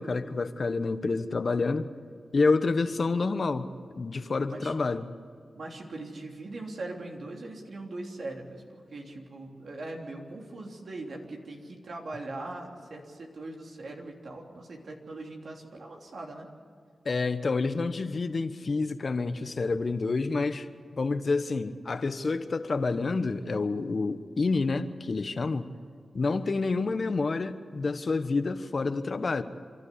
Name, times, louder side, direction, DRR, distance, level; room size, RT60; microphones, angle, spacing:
voice 1, 0.0-1.9 2.3-3.7 4.0-5.1 17.0-20.7 21.0-25.7 26.1-29.4, left 3 dB, 60° left, 11 dB, 1.1 m, -28 dB
voice 2, 5.5-16.5 20.4-20.6 25.6-25.8 26.3-26.6, right 2 dB, 70° right, 1 dB, 3.2 m, -41 dB
29.0 x 12.0 x 8.5 m, 2.2 s
cardioid pair, 45°, 0 cm